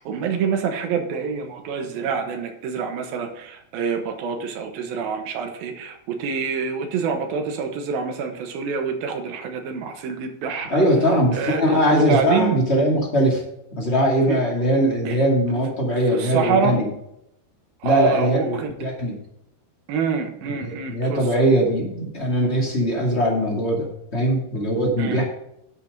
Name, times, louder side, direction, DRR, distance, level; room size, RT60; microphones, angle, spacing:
voice 1, 0.0-10.8 11.3-11.6 11.9-12.6 14.3-14.4 15.1-15.2 16.1-16.8 17.8-18.7 19.9-21.3 25.0-25.2, right 5 dB, 65° right, 4 dB, 2.7 m, -26 dB
voice 2, 10.7-13.4 13.7-16.9 17.8-19.2 20.5-25.2, equal, 25° left, -1 dB, 1.5 m, -21 dB
11.0 x 6.8 x 5.3 m, 0.80 s
omnidirectional pair, 5.2 m